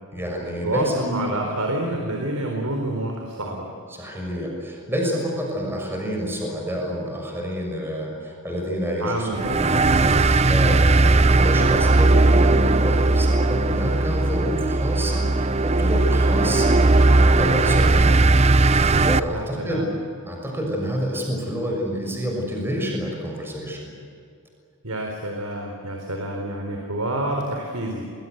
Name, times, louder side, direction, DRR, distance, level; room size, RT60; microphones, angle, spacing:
voice 1, 0.1-0.9 1.3-1.4 4.0-16.8 17.2-18.3 18.6-19.9 20.3-23.9, equal, 10° right, 0 dB, 6.2 m, -28 dB
voice 2, 0.6-3.7 9.0-10.1 19.2-19.9 24.8-28.1, right 1 dB, 80° right, 2 dB, 4.2 m, -28 dB
sound 1, 9.3-19.2, right 2 dB, 30° right, 0.6 m, -18 dB
30.0 x 21.5 x 8.1 m, 2.3 s
head